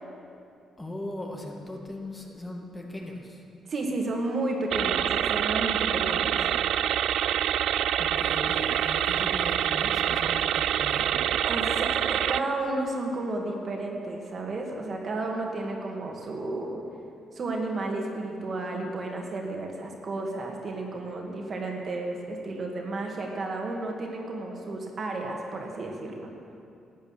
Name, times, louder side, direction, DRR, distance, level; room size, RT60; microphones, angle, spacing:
voice 1, 0.8-3.4 8.0-11.1, left 1 dB, 15° left, 0 dB, 2.0 m, -38 dB
voice 2, 3.7-6.4 11.5-16.8 17.3-26.1, right 2 dB, 45° right, 1 dB, 2.0 m, -32 dB
sound 1, 4.7-12.4, right 10 dB, 80° right, 0.3 m, -26 dB
13.0 x 8.8 x 7.3 m, 2.5 s
cardioid pair, 90°, 0 cm